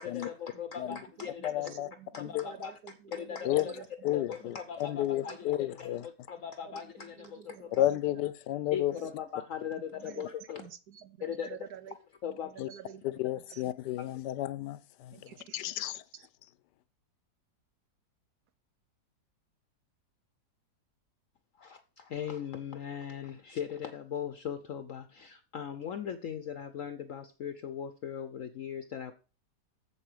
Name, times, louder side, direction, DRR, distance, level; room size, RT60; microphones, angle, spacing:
voice 1, 0.0-1.6 2.1-2.7 3.1-3.7 4.1-7.9 8.7-10.6 11.2-11.6 12.2-12.5 21.6-29.1, left 8 dB, 60° left, 0.9 m, -39 dB
voice 2, 0.8-4.6 5.0-5.4 5.9-6.1 6.7-8.2 8.9-9.1 9.9-10.2 10.6-12.0 12.2-13.6 15.1-16.3, right 8 dB, 70° right, 1.3 m, -50 dB
voice 3, 1.4-1.9 2.2-2.4 3.4-3.7 4.0-6.1 7.7-8.9 12.6-12.7 13.2-16.0, left 13 dB, 80° left, 1.2 m, -32 dB
7.4 x 7.3 x 4.9 m
omnidirectional pair, 1.8 m